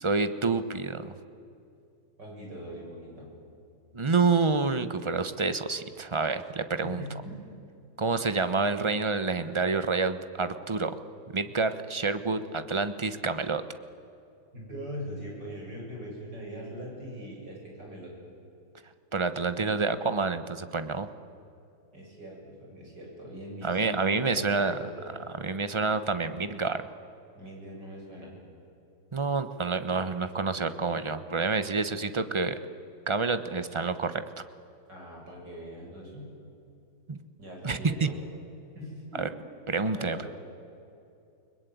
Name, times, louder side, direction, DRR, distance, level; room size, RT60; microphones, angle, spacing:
voice 1, 0.0-1.2 3.9-7.0 8.0-10.9 11.3-13.6 19.1-21.1 23.6-24.8 25.4-26.8 29.1-32.6 33.1-34.2 37.1-37.2 37.6-38.1 39.2-39.3 39.7-40.3, right 4 dB, 25° right, 11 dB, 0.7 m, -28 dB
voice 2, 2.2-3.3 6.8-7.4 14.5-18.1 21.9-25.2 27.3-28.3 34.9-36.3 37.4-38.1 38.7-39.3 39.9-40.3, equal, 60° right, -1 dB, 8.3 m, -41 dB
30.0 x 20.5 x 9.4 m, 2.6 s
omnidirectional pair, 2.1 m